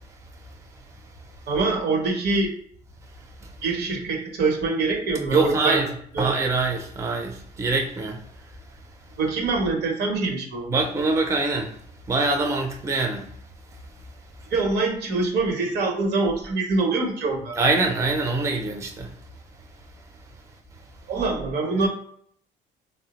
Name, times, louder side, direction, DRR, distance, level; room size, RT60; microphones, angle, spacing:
voice 1, 1.5-2.5 3.6-5.8 6.1-6.3 9.2-10.7 14.5-17.6 21.1-21.9, right 3 dB, 75° right, 0.9 m, -24 dB
voice 2, 5.3-5.9 6.2-8.2 10.7-11.7 12.1-13.3 17.6-19.1, right 3 dB, 20° right, 0.5 m, -24 dB
3.2 x 2.0 x 2.9 m
cardioid pair, 110°, 17 cm